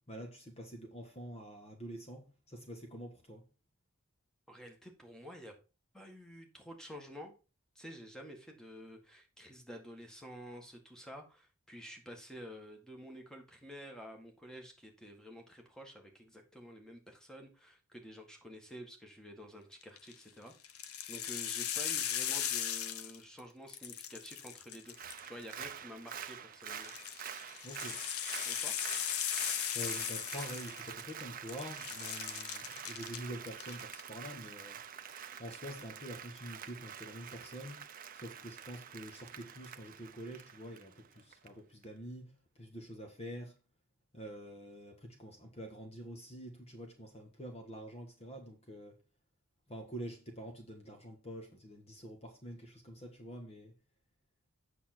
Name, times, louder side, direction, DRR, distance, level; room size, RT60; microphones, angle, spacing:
voice 1, 0.1-3.5 27.6-28.0 29.7-34.8 35.4-37.8 38.1-42.3 42.6-43.5 44.1-49.0 49.7-53.7, equal, 30° left, 1.5 m, -46 dB
voice 2, 4.5-5.5 5.9-7.4 7.8-20.5 21.1-25.0 25.2-26.9 28.5-28.7, equal, 5° left, 1.8 m, -50 dB
sound 1, 19.8-20.1 20.6-23.4 23.7-25.5 26.7-31.2 31.5-33.2 33.6-34.0, left 9 dB, 85° left, 0.8 m, -38 dB
Applause, 24.9-41.5 41.8-41.9, right 8 dB, 40° right, 0.7 m, -47 dB
8.5 x 6.5 x 4.4 m
head